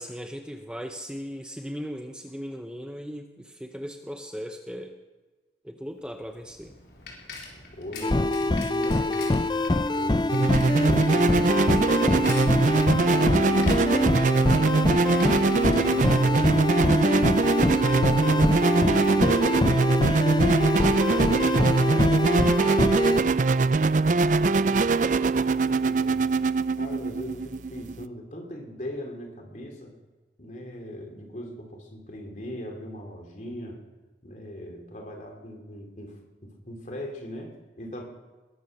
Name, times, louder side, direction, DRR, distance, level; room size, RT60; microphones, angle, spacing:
voice 1, 0.0-4.9 5.6-6.7, equal, 5° right, 5 dB, 0.8 m, -37 dB
Bicycle, 6.0-16.9, left 3 dB, 70° left, 4.3 m, -45 dB
voice 2, 7.7-9.5 9.9-15.0 15.6-20.5 21.1-23.6 24.3-26.2 26.8-30.0 30.4-33.8 34.2-38.0, equal, 45° left, 2 dB, 3.2 m, -40 dB
sound 1, 8.0-23.2, left 2 dB, 25° left, 0.5 m, -24 dB
sound 2, 10.3-28.1, right 3 dB, 45° right, 0.4 m, -22 dB
21.0 x 9.8 x 6.7 m, 1.3 s
head